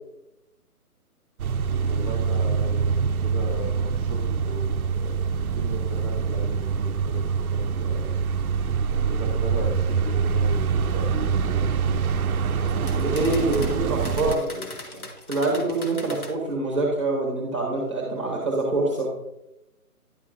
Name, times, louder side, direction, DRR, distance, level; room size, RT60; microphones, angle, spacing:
sound 1, 1.4-14.4, right 6 dB, 65° right, 0.5 m, -25 dB
voice 1, 1.7-8.1 9.0-12.0 12.7-15.1, equal, 25° left, -4 dB, 1.6 m, -38 dB
sound 2, 12.4-16.3, left 2 dB, 70° left, 1.7 m, -40 dB
voice 2, 13.0-14.4 15.3-19.1, right 2 dB, 20° right, -1 dB, 1.0 m, -25 dB
10.5 x 6.5 x 2.6 m, 0.91 s
hypercardioid pair, 175°, 46 cm